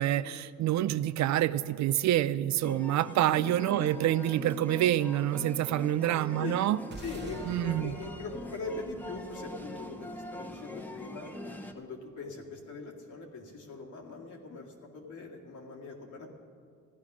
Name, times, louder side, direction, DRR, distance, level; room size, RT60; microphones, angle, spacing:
voice 1, 0.0-6.8 7.5-7.9, right 13 dB, 65° right, 16 dB, 0.5 m, -27 dB
sound 1, 2.6-11.7, left 1 dB, 5° left, 1.0 m, -43 dB
sound 2, 6.9-11.4, right 2 dB, 35° right, 1.3 m, -48 dB
voice 2, 7.0-11.3 11.7-16.3, left 4 dB, 75° left, 0 dB, 2.1 m, -41 dB
14.5 x 10.5 x 6.1 m, 2.3 s
cardioid pair, 90°, 30 cm